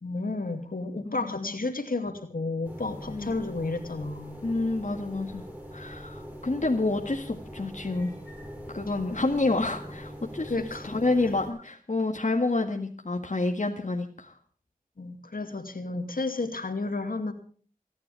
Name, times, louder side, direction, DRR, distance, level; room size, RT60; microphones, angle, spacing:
voice 1, 0.0-4.4 10.5-10.9 15.0-17.3, left 3 dB, 75° left, 6 dB, 2.5 m, -32 dB
voice 2, 1.1-1.6 3.1-3.4 4.4-5.4 5.7-8.1 8.7-10.5 10.8-14.3, left 2 dB, 55° left, 2 dB, 1.9 m, -28 dB
sound 1, 2.6-11.5, equal, 10° right, 6.0 m, -42 dB
29.0 x 10.5 x 3.4 m, 0.43 s
wide cardioid pair, 55°, 15 cm